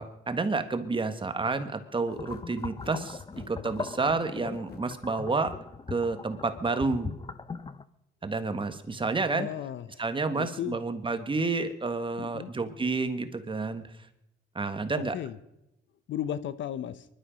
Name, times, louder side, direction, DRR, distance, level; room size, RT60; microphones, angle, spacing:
voice 1, 0.0-3.2 3.5-5.5 5.9-7.1 8.2-9.5 10.0-13.8 14.5-15.2, right 3 dB, 25° right, 9 dB, 1.5 m, -30 dB
sound 1, 2.1-4.9, left 5 dB, 55° left, 1.7 m, -47 dB
sound 2, 2.1-7.8, left 4 dB, 25° left, 0.7 m, -40 dB
voice 2, 9.3-10.0 10.4-10.8 12.2-12.5 15.1-15.4 16.1-17.1, left 10 dB, 70° left, 14 dB, 0.9 m, -35 dB
23.5 x 11.5 x 5.2 m, 0.87 s
cardioid pair, 90°, 20 cm